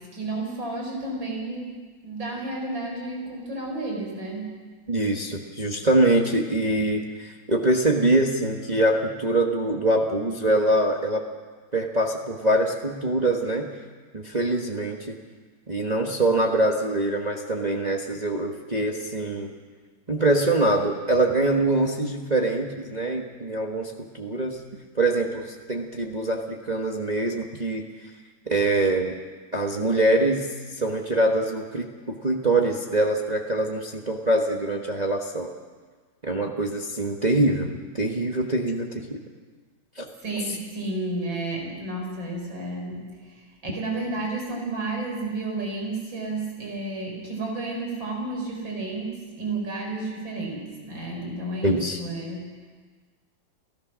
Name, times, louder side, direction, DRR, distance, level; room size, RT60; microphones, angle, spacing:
voice 1, 0.1-1.8 2.0-4.5 40.2-52.7, right 2 dB, 70° right, 0 dB, 5.5 m, -32 dB
voice 2, 4.9-11.2 11.7-13.7 14.1-15.2 15.7-19.5 20.1-24.6 24.9-27.9 28.5-29.2 29.5-30.5 30.7-35.5 36.2-39.2 40.0-40.1 51.6-52.0, right 2 dB, 25° right, 1 dB, 1.2 m, -24 dB
29.5 x 15.0 x 6.2 m, 1.5 s
omnidirectional pair, 2.2 m